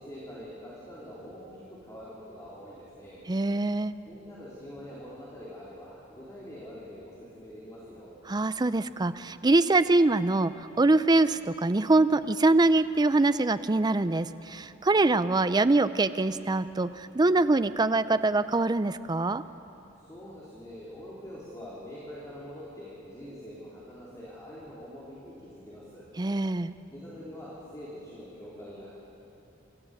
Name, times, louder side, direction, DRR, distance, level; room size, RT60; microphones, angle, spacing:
voice 1, 0.0-3.2 4.0-8.1 20.0-26.0 26.9-28.9, equal, 15° left, -7 dB, 3.6 m, -44 dB
voice 2, 3.3-3.9 8.3-19.4 26.2-26.7, right 2 dB, 20° right, 13 dB, 0.5 m, -24 dB
26.5 x 14.0 x 8.0 m, 3.0 s
head